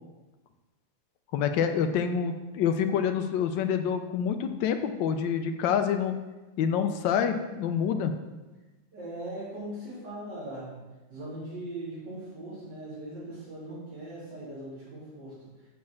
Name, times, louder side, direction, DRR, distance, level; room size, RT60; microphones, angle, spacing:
voice 1, 1.3-6.1 6.6-8.1, left 7 dB, 75° left, 7 dB, 1.4 m, -27 dB
voice 2, 8.9-10.7 11.1-15.3, right 1 dB, 60° right, -9 dB, 3.9 m, -39 dB
7.6 x 4.4 x 7.0 m, 1.1 s
omnidirectional pair, 2.1 m